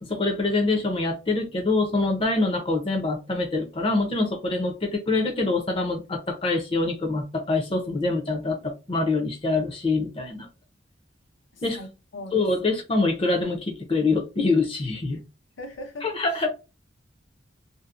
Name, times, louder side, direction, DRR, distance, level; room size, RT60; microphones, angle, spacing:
voice 1, 0.0-10.5 11.6-11.8 12.3-15.2 16.0-16.5, left 3 dB, 30° left, 0.5 m, -25 dB
voice 2, 11.5-12.4 15.6-16.5, left 1 dB, 85° left, 0.7 m, -40 dB
2.6 x 2.0 x 2.4 m
head